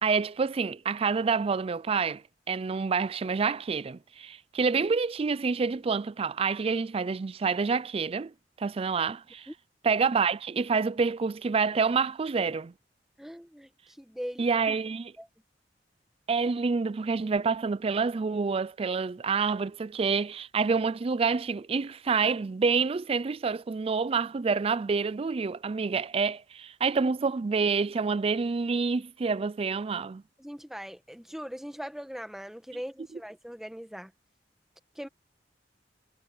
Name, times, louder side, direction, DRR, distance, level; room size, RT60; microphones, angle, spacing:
voice 1, 0.0-9.5 9.8-12.7 14.4-15.1 16.3-30.2 33.1-33.2, right 5 dB, 30° right, 0.4 m, -28 dB
voice 2, 13.2-13.7 14.0-14.5 15.2-15.3 30.4-34.1 34.9-35.1, equal, ahead, 1.6 m, -40 dB
head